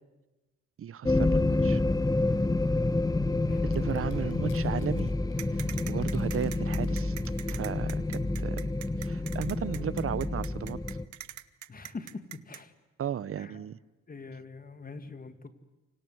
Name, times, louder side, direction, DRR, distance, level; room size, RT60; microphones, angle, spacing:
voice 1, 0.8-1.8 3.6-5.1 5.5-7.1 7.5-8.7 9.0-10.8 13.0-13.8, right 9 dB, 45° right, 20 dB, 0.9 m, -35 dB
sound 1, 1.1-11.1, left 2 dB, 10° left, 1.2 m, -28 dB
sound 2, 3.7-6.5 6.8-7.3, left 9 dB, 85° left, 6.0 m, -59 dB
sound 3, 5.4-12.6, right 12 dB, 70° right, 1.2 m, -43 dB
voice 2, 11.7-12.7 13.4-13.7 14.1-15.5, left 4 dB, 30° left, 10 dB, 2.3 m, -43 dB
28.5 x 26.0 x 8.0 m, 1.1 s
cardioid pair, 90°, 30 cm